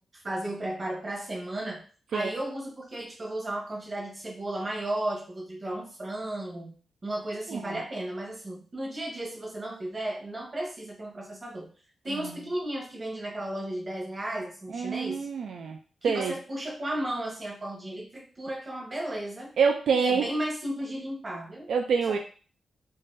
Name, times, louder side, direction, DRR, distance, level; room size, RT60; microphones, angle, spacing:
voice 1, 0.0-1.8 2.1-6.7 7.0-11.7 12.0-15.3 16.0-19.5 19.9-21.7 22.1-22.2, right 1 dB, 25° right, -1 dB, 0.9 m, -34 dB
voice 2, 14.7-15.8 16.0-16.3 19.6-20.2 21.7-22.2, right 6 dB, 75° right, 3 dB, 0.3 m, -26 dB
3.7 x 2.6 x 2.6 m, 0.40 s
wide cardioid pair, 150°, 0 cm